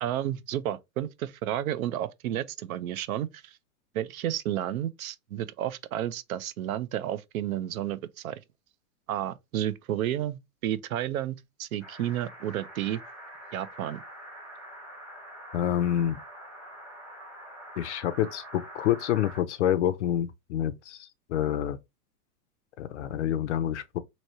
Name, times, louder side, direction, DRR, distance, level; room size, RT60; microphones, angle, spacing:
voice 1, 0.0-3.6 3.9-8.4 9.1-13.0 13.5-14.0, right 12 dB, 65° right, 0.6 m, -31 dB
sound 1, 11.8-19.4, right 1 dB, 5° right, 0.8 m, -45 dB
voice 2, 15.5-16.2 17.8-21.8 22.8-24.0, left 11 dB, 50° left, 0.5 m, -28 dB
3.1 x 2.8 x 4.1 m
supercardioid pair, 170°, 47 cm